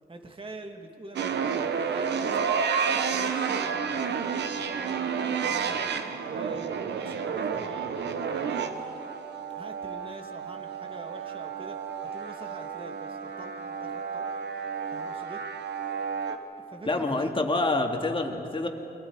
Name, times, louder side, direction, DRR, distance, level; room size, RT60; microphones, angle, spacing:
voice 1, 0.1-2.6 2.9-4.3 4.6-5.9 6.3-7.9 8.4-9.1 9.5-14.3 14.9-15.4 16.5-17.6, right 2 dB, 30° right, 4 dB, 2.5 m, -45 dB
sound 1, 1.2-16.4, right 6 dB, 90° right, 1.2 m, -31 dB
voice 2, 16.8-18.7, left 2 dB, 30° left, 3 dB, 2.4 m, -27 dB
30.0 x 22.5 x 4.9 m, 2.8 s
cardioid pair, 70°, 17 cm